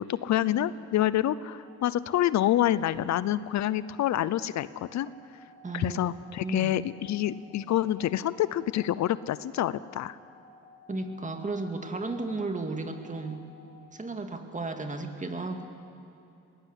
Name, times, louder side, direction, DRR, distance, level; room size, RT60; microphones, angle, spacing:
voice 1, 0.0-5.1 5.7-10.2, left 12 dB, 65° left, 17 dB, 0.6 m, -27 dB
sound 1, 1.6-13.8, left 3 dB, 85° right, 3.3 m, -55 dB
voice 2, 5.6-6.0 6.4-6.8 10.9-13.4 13.9-15.7, right 3 dB, 25° right, 5 dB, 2.2 m, -34 dB
21.5 x 17.5 x 8.2 m, 2.8 s
cardioid pair, 90°, 30 cm